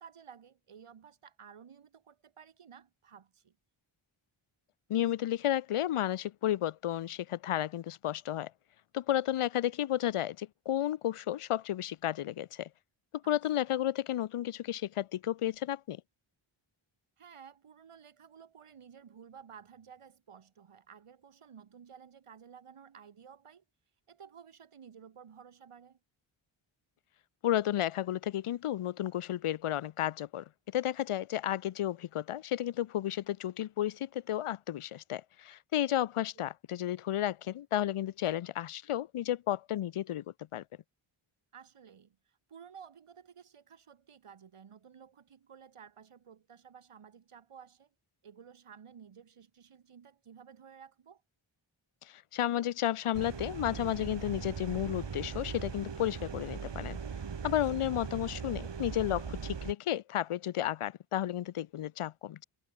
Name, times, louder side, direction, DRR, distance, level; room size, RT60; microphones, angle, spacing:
voice 1, 0.0-3.6 13.2-13.4 17.2-23.6 24.1-26.0 41.5-47.9 48.2-51.2 57.4-57.6, right 7 dB, 85° right, 5.5 m, -54 dB
voice 2, 4.9-8.5 8.9-12.7 13.3-16.0 27.4-30.4 30.7-40.2 40.5-40.6 52.1-57.0 57.4-62.4, left 12 dB, 90° left, 0.8 m, -32 dB
sound 1, 53.1-59.7, right 6 dB, 55° right, 3.7 m, -40 dB
wide cardioid pair, 130°, 50 cm